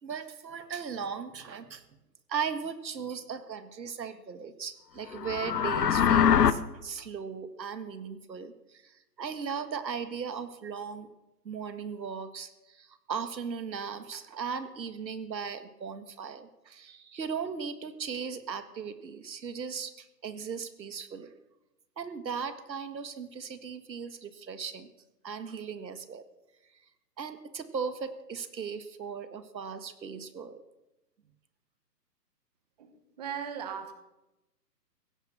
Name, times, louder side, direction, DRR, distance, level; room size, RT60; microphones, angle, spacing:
voice 1, 0.0-1.8 2.3-11.1 11.4-21.3 22.0-24.9 25.2-26.2 27.2-30.6, right 6 dB, 85° right, 11 dB, 1.8 m, -37 dB
sound 1, 5.1-6.5, left 8 dB, 70° left, 1.1 m, -23 dB
voice 2, 33.2-34.0, right 8 dB, 25° right, 9 dB, 0.9 m, -37 dB
16.5 x 10.5 x 6.5 m, 0.99 s
hypercardioid pair, 160°, 50 cm